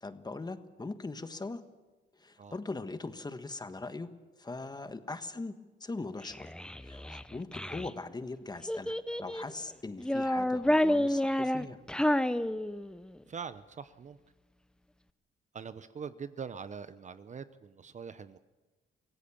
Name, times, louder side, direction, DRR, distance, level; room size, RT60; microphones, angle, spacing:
voice 1, 0.0-1.6 2.1-4.1 4.4-6.5 6.8-11.8, left 3 dB, 20° left, 10 dB, 1.4 m, -41 dB
Child speech kid speaking, 6.2-7.9 8.7-9.5 10.0-13.1, left 1 dB, 5° left, 0.7 m, -30 dB
voice 2, 13.3-14.2 15.5-18.4, right 6 dB, 35° right, 13 dB, 0.8 m, -43 dB
24.5 x 17.0 x 7.2 m, 1.2 s
cardioid pair, 90°, 20 cm